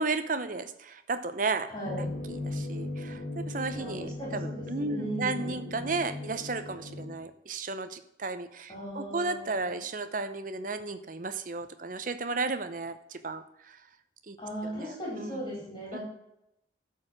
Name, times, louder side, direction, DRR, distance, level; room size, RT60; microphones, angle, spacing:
voice 1, 0.0-1.7 2.0-13.8 14.3-14.4 14.6-15.4 15.9-16.0, right 3 dB, 45° right, 10 dB, 0.7 m, -34 dB
voice 2, 1.7-2.1 3.7-5.9 8.7-9.7 14.4-16.0, equal, 25° left, -5 dB, 4.4 m, -38 dB
sound 1, 1.9-7.2, left 2 dB, 50° left, 1.7 m, -37 dB
12.0 x 4.7 x 6.3 m, 0.81 s
head